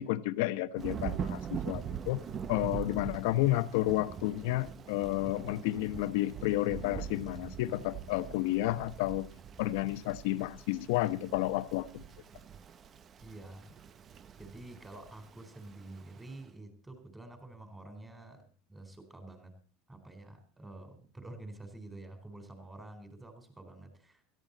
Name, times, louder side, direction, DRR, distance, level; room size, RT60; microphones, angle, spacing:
voice 1, 0.0-2.2 2.5-9.3 9.6-12.0, left 16 dB, 75° left, 1.1 m, -31 dB
Thunder / Rain, 0.8-16.4, right 8 dB, 30° right, 0.9 m, -43 dB
voice 2, 2.0-2.5 13.2-13.7 14.4-19.6 19.9-24.2, right 2 dB, 10° right, 4.2 m, -49 dB
18.0 x 13.5 x 4.1 m
supercardioid pair, 130°, 0 cm